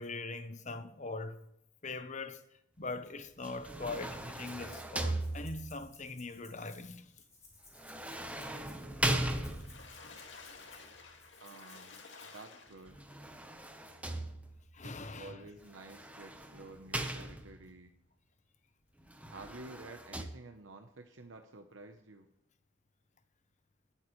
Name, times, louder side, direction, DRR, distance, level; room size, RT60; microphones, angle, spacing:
voice 1, 0.0-1.4 1.8-2.4 2.8-7.1 12.2-12.3 14.7-15.3, left 3 dB, 40° left, 1.0 m, -41 dB
sound 1, 3.4-5.9 7.7-10.0 12.9-14.7 15.7-17.7 19.1-20.3, right 1 dB, 5° right, 1.0 m, -38 dB
Rattle (instrument), 4.4-4.9 5.2-12.4, left 3 dB, 15° left, 5.6 m, -60 dB
Water / Splash splatter, 9.4-13.1 13.7-13.8 14.1-14.2, left 4 dB, 70° left, 2.2 m, -52 dB
voice 2, 11.4-12.0 12.3-13.0 14.8-17.9 19.3-22.3, right 2 dB, 85° right, 1.0 m, -51 dB
21.0 x 8.7 x 3.2 m
head